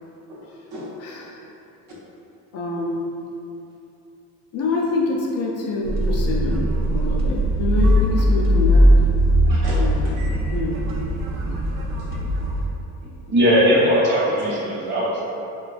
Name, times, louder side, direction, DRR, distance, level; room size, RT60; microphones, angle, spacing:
voice 1, 0.3-1.0 9.4-10.4 11.6-12.1 14.4-14.8, equal, 60° right, -6 dB, 0.9 m, -37 dB
voice 2, 1.0-1.5 2.5-3.2 4.5-8.9 9.8-10.2 10.5-11.4, left 3 dB, 45° left, -2 dB, 0.4 m, -26 dB
sound 1, 5.8-12.7, equal, 80° right, 0.5 m, -19 dB
voice 3, 13.3-15.2, equal, 30° right, -7 dB, 0.8 m, -18 dB
3.1 x 2.2 x 2.4 m, 2.7 s
cardioid pair, 110°, 35 cm